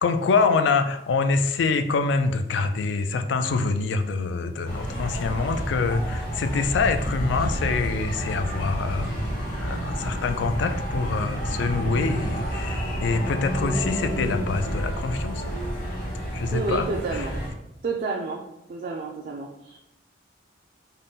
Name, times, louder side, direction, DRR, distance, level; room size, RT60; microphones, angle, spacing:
voice 1, 0.0-9.2 9.6-15.5 16.3-17.3, left 4 dB, 75° left, 8 dB, 0.3 m, -25 dB
sound 1, 4.6-17.5, equal, 45° left, 1.2 m, -29 dB
voice 2, 9.7-10.0 16.5-17.4 17.8-18.4 18.7-19.8, right 4 dB, 45° right, -1 dB, 0.3 m, -31 dB
3.6 x 2.1 x 3.9 m, 0.84 s
head